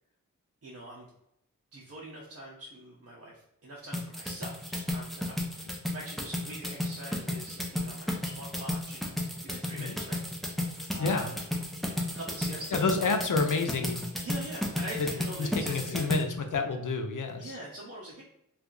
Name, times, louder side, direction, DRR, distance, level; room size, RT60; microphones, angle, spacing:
voice 1, 0.6-1.1 1.7-9.1 9.4-10.2 10.5-11.3 12.0-13.1 14.2-16.1 17.4-18.2, right 1 dB, 45° right, -5 dB, 0.8 m, -43 dB
sound 1, 3.9-16.2, left 1 dB, ahead, 0.6 m, -33 dB
voice 2, 10.9-11.3 12.7-14.0 15.0-15.1 15.4-17.6, left 4 dB, 70° left, 5 dB, 0.6 m, -29 dB
2.7 x 2.4 x 3.8 m, 0.80 s
wide cardioid pair, 70°, 33 cm